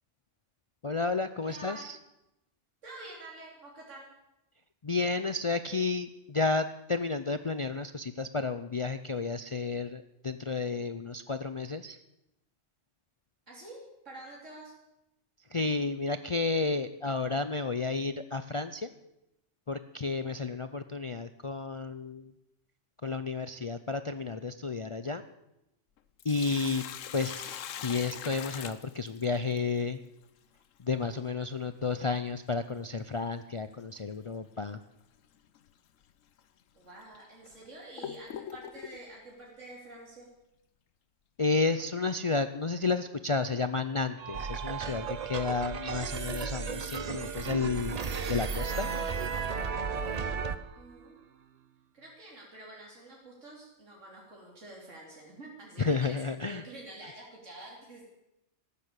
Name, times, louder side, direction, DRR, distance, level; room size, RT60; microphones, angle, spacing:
voice 1, 0.8-2.0 4.8-12.0 15.5-18.9 19.7-22.3 23.0-25.2 26.2-26.8 27.1-30.0 30.8-34.8 41.4-48.0 48.3-48.9 55.8-56.6, left 4 dB, 45° left, 11 dB, 0.4 m, -31 dB
voice 2, 1.4-1.9 2.8-4.1 13.5-14.7 20.2-20.3 36.7-40.3 50.7-51.5 51.9-58.1, right 1 dB, 70° right, -3 dB, 3.5 m, -48 dB
Sink (filling or washing), 26.0-29.6 32.0-32.1 34.0-34.2 34.7-34.8 35.6-35.7 36.4-36.5 37.1-39.0, left 9 dB, 85° left, 1.2 m, -42 dB
sound 1, 44.2-51.8, right 8 dB, 55° right, 1.1 m, -44 dB
sound 2, 44.3-50.6, right 5 dB, 35° right, 0.8 m, -34 dB
13.5 x 12.5 x 8.2 m, 0.89 s
omnidirectional pair, 1.3 m